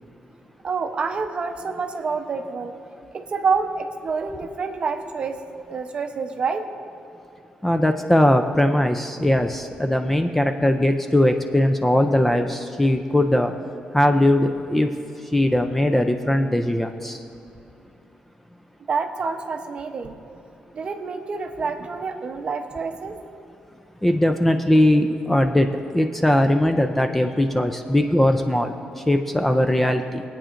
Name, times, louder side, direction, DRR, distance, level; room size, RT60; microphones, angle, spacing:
voice 1, 0.6-2.7 3.1-5.4 5.7-6.6 18.9-20.1 20.7-23.2, right 5 dB, 40° right, 6 dB, 0.7 m, -27 dB
voice 2, 7.6-13.5 13.9-14.9 15.3-17.2 24.0-28.7 29.1-30.2, left 1 dB, 10° left, 6 dB, 0.4 m, -20 dB
22.0 x 8.7 x 2.5 m, 2.8 s
cardioid pair, 150°, 3 cm